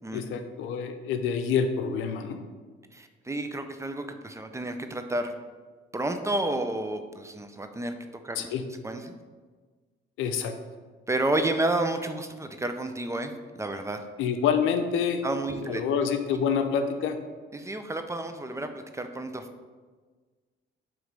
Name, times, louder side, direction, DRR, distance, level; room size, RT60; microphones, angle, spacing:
voice 1, 0.1-2.4 8.4-8.6 10.2-10.5 14.2-15.2 15.6-17.2, left 7 dB, 90° left, 7 dB, 0.6 m, -27 dB
voice 2, 2.9-5.3 5.9-7.9 8.2-8.5 8.8-9.1 11.1-14.0 15.2-15.8 17.5-19.5, right 2 dB, 15° right, 7 dB, 0.6 m, -30 dB
7.8 x 3.2 x 5.2 m, 1.4 s
cardioid pair, 90°, 20 cm